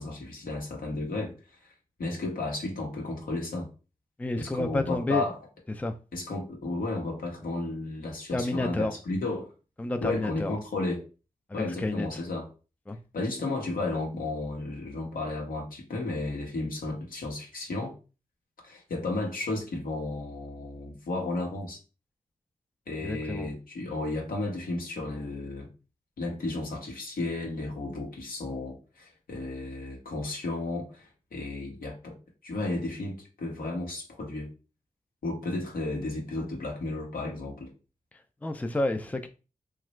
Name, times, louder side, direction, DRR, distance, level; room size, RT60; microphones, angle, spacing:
voice 1, 0.0-1.7 2.0-3.7 4.4-5.4 6.1-9.5 10.0-11.0 11.5-12.5 13.1-17.9 18.6-21.8 22.9-25.7 26.2-32.2 32.4-34.5 35.2-37.7, left 2 dB, 75° left, 1.1 m, -33 dB
voice 2, 4.2-5.3 5.8-5.9 8.3-8.9 9.8-10.6 11.5-12.2 12.9-13.0 23.0-23.5 38.4-39.3, left 2 dB, 10° left, 0.4 m, -30 dB
2.9 x 2.4 x 3.1 m
cardioid pair, 40°, 15 cm